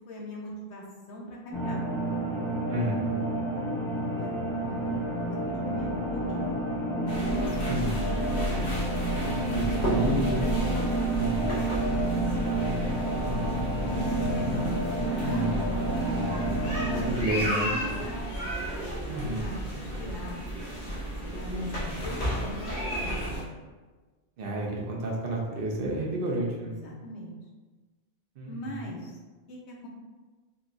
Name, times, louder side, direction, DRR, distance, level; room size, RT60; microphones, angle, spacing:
voice 1, 0.1-1.8 3.4-3.7 4.2-6.6 7.2-8.7 9.9-10.3 11.3-12.7 13.3-18.2 18.8-20.5 21.0-23.5 26.7-27.4 28.5-29.2 29.5-29.9, equal, 85° left, -3 dB, 1.0 m, -41 dB
sound 1, 1.5-17.1, right 1 dB, 5° left, 0.6 m, -30 dB
voice 2, 2.7-3.1 7.7-8.0 9.5-10.4 11.2-11.6 15.2-15.6 16.1-16.5 16.9-17.7 19.1-19.4 24.4-26.8 28.4-28.9, right 1 dB, 60° right, -2 dB, 0.7 m, -31 dB
sound 2, 4.4-20.4, right 1 dB, 65° left, 1.3 m, -47 dB
sound 3, 7.1-23.4, equal, 45° left, 0.8 m, -32 dB
3.8 x 2.3 x 2.5 m, 1.3 s
omnidirectional pair, 1.1 m